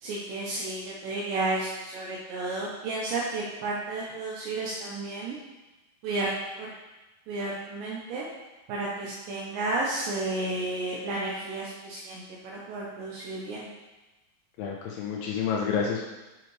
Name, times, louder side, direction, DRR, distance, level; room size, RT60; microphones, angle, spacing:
voice 1, 0.0-5.4 6.0-6.3 6.6-6.7 7.3-8.2 8.7-13.7, right 2 dB, 80° right, -4 dB, 2.0 m, -32 dB
voice 2, 14.6-16.0, left 6 dB, 80° left, -1 dB, 2.0 m, -29 dB
6.1 x 5.1 x 3.1 m, 1.1 s
omnidirectional pair, 4.5 m